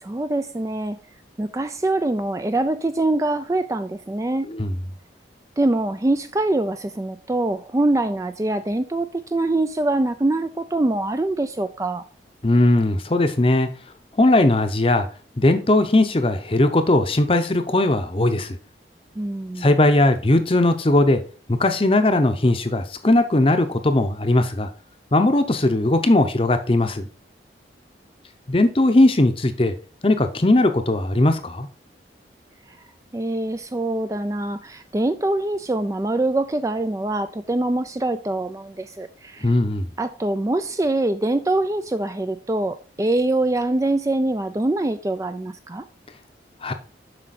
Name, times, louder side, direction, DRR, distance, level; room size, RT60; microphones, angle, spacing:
voice 1, 0.0-1.0 1.4-4.5 5.6-12.0 19.2-19.7 33.1-39.5 40.0-45.9, right 2 dB, 15° right, 0.3 m, -24 dB
voice 2, 12.4-13.7 14.2-15.1 15.4-18.5 19.6-21.2 21.5-24.7 25.1-27.1 28.5-29.7 30.0-31.7 39.4-39.8 46.6-46.7, left 2 dB, 30° left, 0.7 m, -18 dB
7.6 x 5.6 x 4.1 m
head